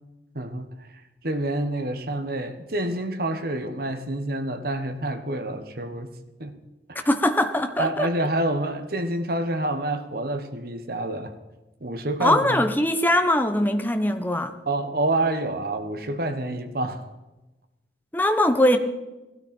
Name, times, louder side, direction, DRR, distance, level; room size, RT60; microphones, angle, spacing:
voice 1, 0.3-6.1 6.4-6.6 6.9-7.1 7.8-11.3 11.8-12.6 14.7-17.1, right 1 dB, 55° right, 1.4 m, -28 dB
voice 2, 7.0-8.1 12.2-14.5 18.1-18.8, left 1 dB, 10° left, 1.0 m, -21 dB
18.5 x 12.5 x 4.4 m
head